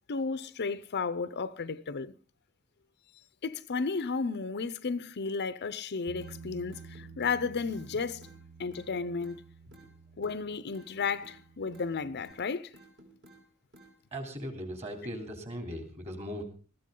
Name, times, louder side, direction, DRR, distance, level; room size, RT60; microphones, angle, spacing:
voice 1, 0.1-2.1 3.4-8.2 8.6-9.4 10.2-12.7, left 4 dB, 50° left, 0.6 m, -33 dB
Bass guitar, 6.1-12.3, right 5 dB, 75° right, 0.8 m, -51 dB
sound 1, 6.2-6.4 6.7-7.4 7.7-7.9 8.2-8.4 8.7-9.4 9.7-9.9 10.2-10.4 10.7-11.4 11.7-11.9 12.2-12.4 12.7-13.4 13.7-13.9, right 1 dB, 55° right, 4.1 m, -55 dB
voice 2, 14.1-16.4, equal, 30° right, 3.4 m, -38 dB
20.0 x 14.0 x 3.8 m
head